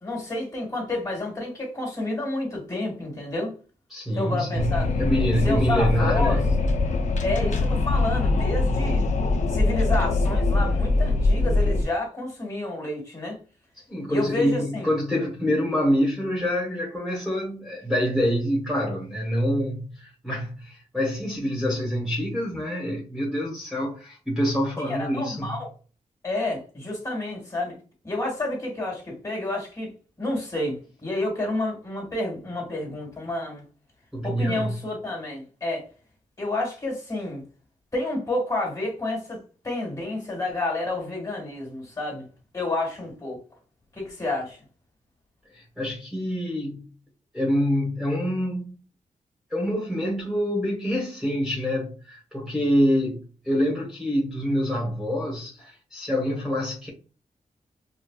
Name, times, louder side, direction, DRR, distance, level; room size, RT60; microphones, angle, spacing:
voice 1, 0.0-3.5 4.2-4.9 5.4-6.4 7.2-9.1 9.5-13.4 14.1-14.9 24.8-25.7 26.2-27.8 28.0-29.9 30.2-33.6 34.2-35.9 36.4-37.4 37.9-42.3 42.5-43.4 43.9-44.6, left 2 dB, 25° left, 1.9 m, -29 dB
voice 2, 3.9-6.4 8.7-8.8 13.9-25.6 34.1-34.7 45.5-46.8 47.3-48.8 49.5-56.9, equal, ahead, 1.3 m, -26 dB
Wind, 4.6-11.8, left 3 dB, 60° left, 0.6 m, -23 dB
5.1 x 2.2 x 2.4 m
wide cardioid pair, 130°, 14 cm